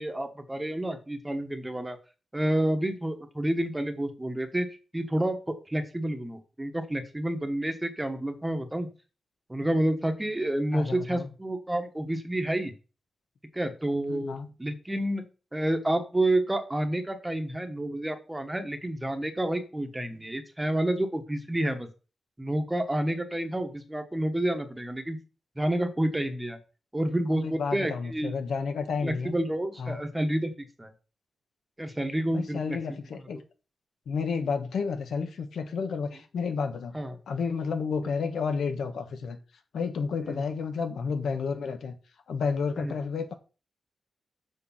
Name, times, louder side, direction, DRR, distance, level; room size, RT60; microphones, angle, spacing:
voice 1, 0.0-2.0 2.3-4.7 4.9-8.9 9.5-12.7 13.5-14.3 14.6-15.3 15.5-21.9 22.4-25.2 25.6-26.6 26.9-28.3 29.0-30.9 31.8-32.8 36.9-37.1 40.2-40.4 42.8-42.9, right 1 dB, 10° right, 1.1 m, -29 dB
voice 2, 10.7-11.3 14.1-14.5 27.3-29.3 29.8-30.0 32.3-33.4 34.1-36.9 37.3-39.4 39.7-41.9 42.3-43.3, left 5 dB, 85° left, 1.3 m, -31 dB
7.1 x 6.5 x 5.7 m
wide cardioid pair, 175°, 0 cm